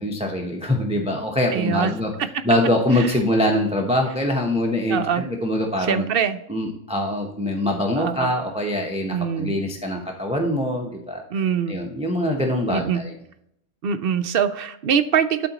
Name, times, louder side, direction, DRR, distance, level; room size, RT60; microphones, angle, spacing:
voice 1, 0.0-2.1 2.4-6.0 6.5-11.2 11.7-13.2, left 1 dB, 5° right, 1 dB, 0.7 m, -23 dB
voice 2, 1.5-1.9 2.9-3.1 4.9-5.2 5.9-6.4 8.0-8.3 9.1-9.6 11.3-11.8 12.7-13.0 13.8-15.5, right 7 dB, 60° right, 10 dB, 0.6 m, -23 dB
12.0 x 4.3 x 2.9 m, 0.77 s
omnidirectional pair, 1.3 m